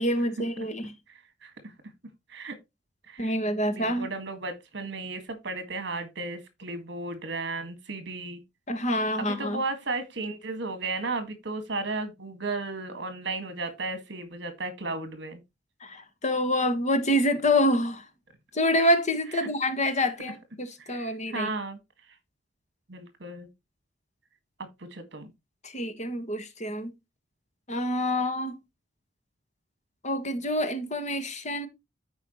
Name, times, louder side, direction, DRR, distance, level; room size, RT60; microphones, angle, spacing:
voice 1, 0.0-0.9 3.2-4.1 8.7-9.6 15.8-18.1 18.5-21.5 25.6-26.9 27.7-28.6 30.0-31.7, left 1 dB, 40° left, 1.6 m, -27 dB
voice 2, 1.1-1.7 2.3-2.6 3.1-3.3 3.7-8.4 9.2-15.4 19.3-19.5 20.8-21.8 22.9-23.5 24.8-25.3, right 3 dB, 65° right, 1.9 m, -34 dB
14.0 x 4.9 x 3.0 m
head